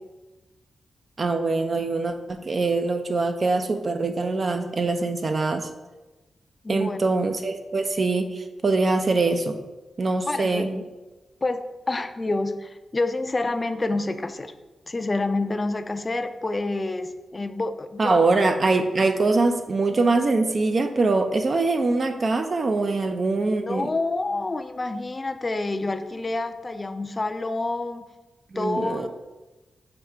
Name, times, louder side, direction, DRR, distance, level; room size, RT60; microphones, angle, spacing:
voice 1, 1.2-5.7 6.7-9.6 10.0-10.8 18.0-23.9 28.5-29.1, right 3 dB, 50° right, 6 dB, 0.3 m, -23 dB
voice 2, 6.6-7.0 10.2-10.7 11.4-11.6 11.9-14.5 14.9-18.3 23.7-28.0 28.6-29.1, left 2 dB, 35° left, 9 dB, 0.3 m, -28 dB
5.1 x 2.3 x 4.4 m, 1.2 s
cardioid pair, 50°, 0 cm